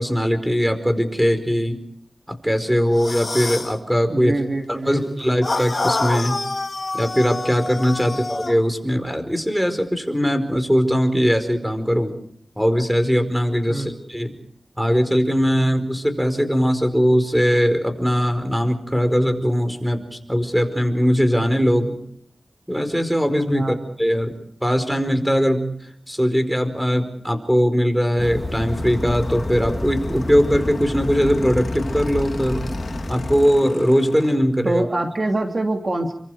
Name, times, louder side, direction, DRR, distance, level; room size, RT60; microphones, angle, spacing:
voice 1, 0.0-1.8 2.3-4.3 4.7-6.4 6.9-12.1 12.6-14.3 14.8-21.9 22.7-24.3 24.6-25.7 26.1-32.6 33.1-34.8, equal, ahead, 9 dB, 4.9 m, -20 dB
sound 1, 2.9-3.8 5.4-8.6, left 3 dB, 50° left, 2.6 m, -27 dB
voice 2, 4.1-5.2 8.0-8.2 13.7-13.9 23.5-23.8 34.6-36.1, right 2 dB, 45° right, 3 dB, 2.9 m, -25 dB
sound 2, 28.2-33.5, left 1 dB, 20° left, 3.3 m, -28 dB
Motorcycle / Engine, 28.5-34.4, left 4 dB, 85° left, 3.2 m, -38 dB
29.5 x 25.0 x 5.0 m, 0.67 s
wide cardioid pair, 65°, 0 cm